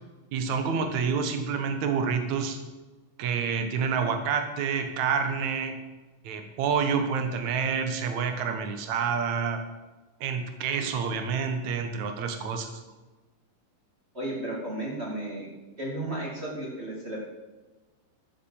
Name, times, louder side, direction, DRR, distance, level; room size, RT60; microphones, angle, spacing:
voice 1, 0.3-2.6 3.2-5.8 6.2-9.6 10.2-12.8, right 6 dB, 60° right, 6 dB, 2.2 m, -28 dB
voice 2, 14.1-15.5 15.8-17.2, right 1 dB, 20° right, -3 dB, 2.2 m, -33 dB
13.5 x 7.7 x 7.3 m, 1.2 s
omnidirectional pair, 4.6 m